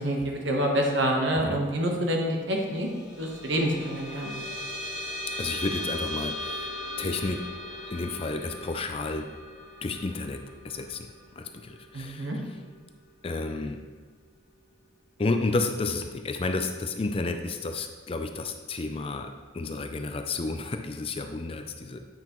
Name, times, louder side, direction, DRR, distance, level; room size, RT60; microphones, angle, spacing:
voice 1, 0.0-2.9 3.2-4.3 11.9-12.4, equal, 65° right, 1 dB, 1.2 m, -27 dB
sound 1, 2.5-13.3, left 1 dB, 80° left, 1.3 m, -38 dB
voice 2, 5.4-7.4 7.8-9.3 9.8-11.1 11.4-12.3 13.2-13.8 15.2-22.1, left 3 dB, 30° left, 6 dB, 0.4 m, -31 dB
8.8 x 5.8 x 3.0 m, 1.4 s
head